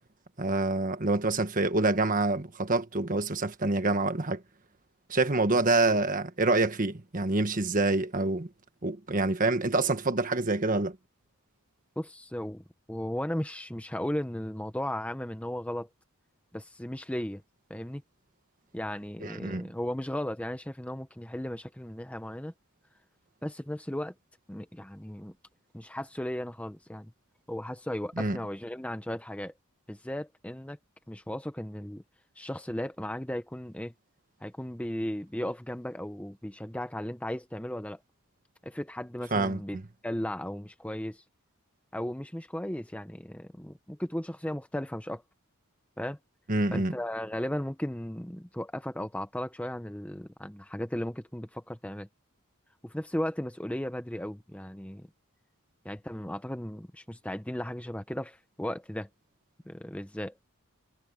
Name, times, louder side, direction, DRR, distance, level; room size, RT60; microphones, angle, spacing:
voice 1, 0.4-4.4 5.1-8.5 8.8-11.0 19.2-19.7 28.2-28.4 39.3-39.8 46.5-46.9, right 2 dB, 40° right, 1.5 m, -26 dB
voice 2, 12.0-15.9 16.5-17.4 17.7-18.0 18.7-22.5 23.4-24.1 24.5-25.3 25.7-27.1 27.5-29.5 29.9-30.8 31.1-32.0 32.4-33.9 34.4-38.0 38.6-39.8 40.0-41.2 41.9-45.2 46.0-46.2 46.7-52.1 52.8-55.1 55.8-59.1 59.6-60.3, left 1 dB, 5° left, 0.8 m, -36 dB
head